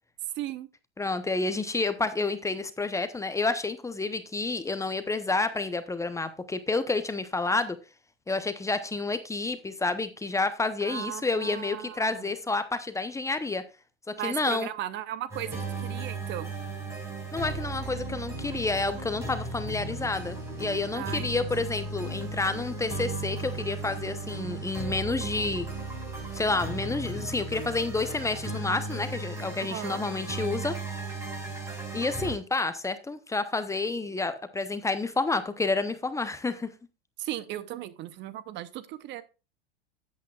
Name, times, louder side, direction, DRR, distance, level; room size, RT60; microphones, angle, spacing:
voice 1, 0.3-0.7 10.8-12.3 14.1-16.5 20.9-21.7 29.6-30.0 37.2-39.2, right 12 dB, 40° right, 15 dB, 0.8 m, -37 dB
voice 2, 1.0-7.8 8.3-13.6 14.1-14.7 17.3-25.7 26.3-30.8 31.9-36.7, left 3 dB, 10° left, 11 dB, 0.8 m, -29 dB
sound 1, 15.3-32.3, right 3 dB, 10° right, 5.0 m, -36 dB
12.5 x 8.6 x 2.4 m, 0.30 s
hypercardioid pair, 105°, 30 cm